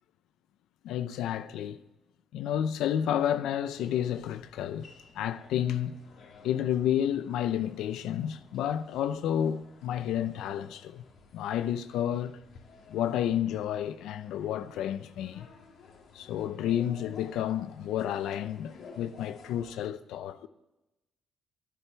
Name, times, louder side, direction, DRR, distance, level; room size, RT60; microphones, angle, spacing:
voice 1, 0.8-1.8 2.3-4.9 5.1-6.0 6.4-11.0 11.3-12.4 12.9-15.5 16.1-20.5, left 10 dB, 85° left, 0.6 m, -31 dB
sound 1, 3.7-19.8, left 5 dB, 70° left, 2.4 m, -54 dB
12.0 x 10.0 x 9.0 m
cardioid pair, 90°, 0 cm